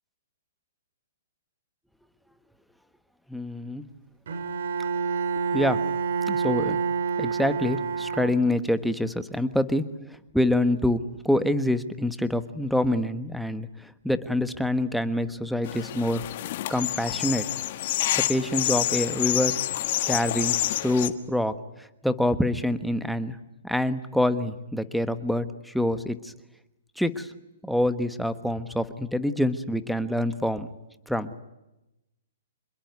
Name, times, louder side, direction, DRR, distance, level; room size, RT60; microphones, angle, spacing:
voice 1, 3.3-3.8 5.4-5.8 6.3-6.8 7.2-16.2 16.7-17.5 18.1-19.5 20.1-20.6 20.8-23.4 23.6-26.3 27.0-27.3 27.6-30.7 31.1-31.4, left 1 dB, ahead, 10 dB, 1.3 m, -26 dB
Bowed string instrument, 4.3-8.8, right 5 dB, 65° right, 4.0 m, -28 dB
sound 1, 15.6-21.1, left 14 dB, 50° left, 1.7 m, -28 dB
26.5 x 21.5 x 9.5 m, 0.94 s
hypercardioid pair, 150°, 0 cm